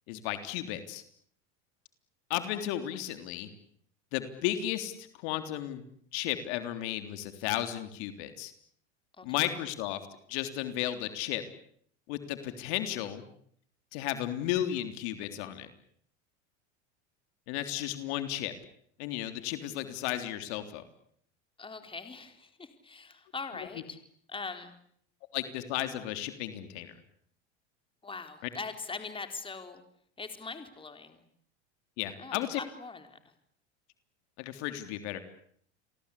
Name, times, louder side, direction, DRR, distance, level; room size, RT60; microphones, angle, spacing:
voice 1, 0.1-1.0 2.3-3.5 4.1-5.8 6.1-8.5 9.2-10.0 10.3-11.4 12.1-13.2 13.9-15.7 17.5-18.5 19.0-20.8 25.3-26.9 32.0-32.6 34.4-35.2, left 13 dB, 65° left, 9 dB, 3.6 m, -34 dB
voice 2, 9.2-9.5 21.6-24.0 24.3-24.7 28.0-29.8 30.2-31.2 32.2-33.2, left 4 dB, 15° left, 8 dB, 4.2 m, -41 dB
30.0 x 23.5 x 8.5 m, 0.65 s
supercardioid pair, 105°, 35 cm